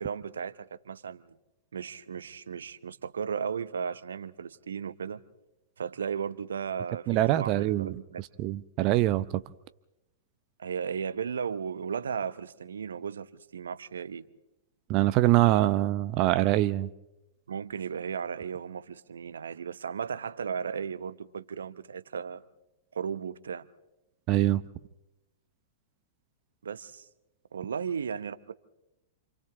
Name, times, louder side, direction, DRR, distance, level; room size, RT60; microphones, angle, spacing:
voice 1, 0.0-1.3 1.7-5.2 5.8-8.2 10.6-14.2 17.5-22.4 22.9-23.7 26.6-27.1 27.5-28.5, right 7 dB, 75° right, 0.9 m, -35 dB
voice 2, 7.1-7.9 8.4-9.4 14.9-16.9 24.3-24.6, right 15 dB, 40° right, 0.7 m, -24 dB
29.0 x 27.0 x 3.7 m
figure-of-eight pair, 105°, 0 cm